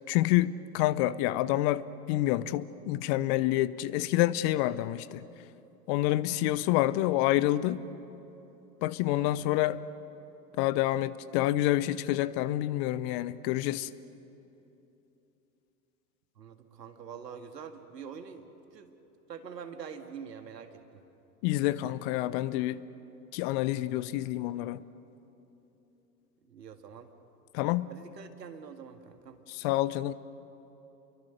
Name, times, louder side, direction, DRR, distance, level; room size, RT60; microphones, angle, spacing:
voice 1, 0.1-5.2 5.9-7.8 8.8-9.8 10.6-13.9 21.4-22.8 23.3-24.8 27.5-27.9 29.5-30.1, left 15 dB, 40° left, 17 dB, 0.7 m, -28 dB
voice 2, 9.1-9.4 16.4-18.5 18.7-18.9 19.3-21.0 26.5-27.1 27.9-29.4, right 7 dB, 75° right, 7 dB, 2.1 m, -45 dB
29.5 x 23.0 x 6.6 m, 3.0 s
figure-of-eight pair, 90°, 49 cm